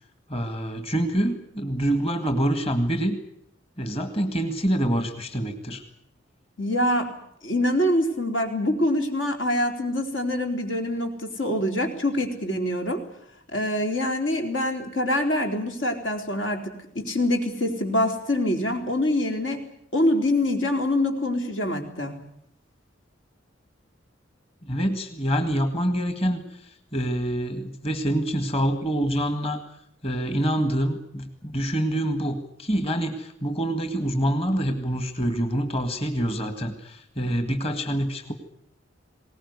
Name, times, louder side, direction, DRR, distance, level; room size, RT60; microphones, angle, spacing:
voice 1, 0.3-3.2 3.8-5.8 24.6-26.4 26.9-29.6 30.0-38.3, right 1 dB, 30° left, 7 dB, 2.0 m, -26 dB
voice 2, 6.6-7.1 7.4-13.0 13.5-19.6 19.9-22.2, left 1 dB, 85° left, 4 dB, 3.9 m, -25 dB
21.5 x 18.5 x 9.7 m, 0.71 s
head